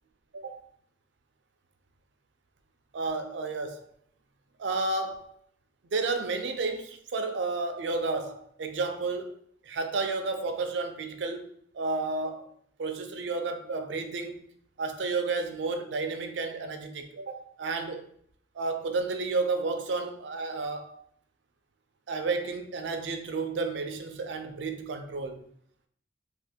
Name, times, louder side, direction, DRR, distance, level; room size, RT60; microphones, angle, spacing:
voice 1, 2.9-3.9 4.6-5.3 5.9-12.5 12.8-14.4 14.8-18.1 18.5-21.0 22.1-25.4, right 3 dB, 85° right, 0.4 m, -32 dB
2.5 x 2.4 x 3.6 m
head